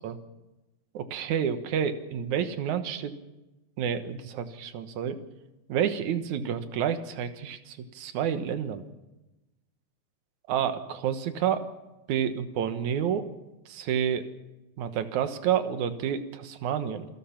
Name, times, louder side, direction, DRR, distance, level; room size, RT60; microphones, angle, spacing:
voice 1, 0.9-3.1 3.8-5.2 5.7-8.8 10.5-11.7 12.1-13.2 13.7-14.3 14.8-17.1, right 8 dB, 75° right, 9 dB, 2.6 m, -29 dB
28.0 x 16.0 x 5.9 m, 1.0 s
omnidirectional pair, 3.5 m